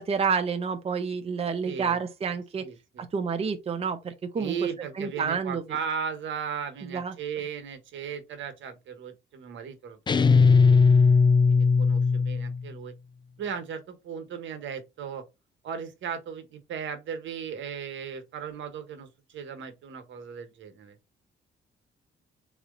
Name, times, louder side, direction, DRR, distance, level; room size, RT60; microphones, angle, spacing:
voice 1, 0.0-2.6 3.0-4.5 5.0-5.6 6.9-7.1, right 6 dB, 30° right, 0.6 m, -29 dB
voice 2, 1.6-2.0 2.6-3.1 4.4-10.9 11.5-12.9 13.4-15.2 15.6-20.9, right 7 dB, 70° right, 1.2 m, -37 dB
sound 1, 10.1-12.6, left 5 dB, 25° left, 0.4 m, -19 dB
3.9 x 3.0 x 3.7 m
cardioid pair, 90°, 20 cm